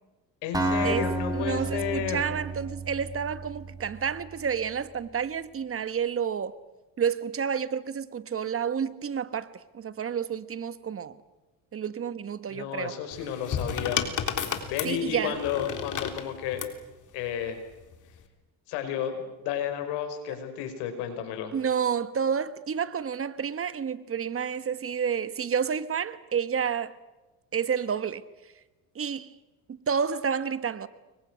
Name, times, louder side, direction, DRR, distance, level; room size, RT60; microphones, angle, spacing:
voice 1, 0.4-2.2 12.5-14.0 14.7-16.6 17.1-17.6 18.7-21.5, left 9 dB, 85° left, 5.6 m, -32 dB
Acoustic guitar, 0.5-4.4, right 2 dB, 10° right, 5.9 m, -31 dB
voice 2, 1.3-6.6 7.0-9.5 9.7-11.2 11.7-12.9 14.8-15.4 21.5-26.9 27.5-28.2 28.9-29.3 29.7-30.9, right 7 dB, 35° right, 1.4 m, -30 dB
sound 1, 13.1-16.8 17.8-18.2, left 8 dB, 50° left, 3.6 m, -32 dB
29.5 x 23.5 x 6.4 m
cardioid pair, 105°, 39 cm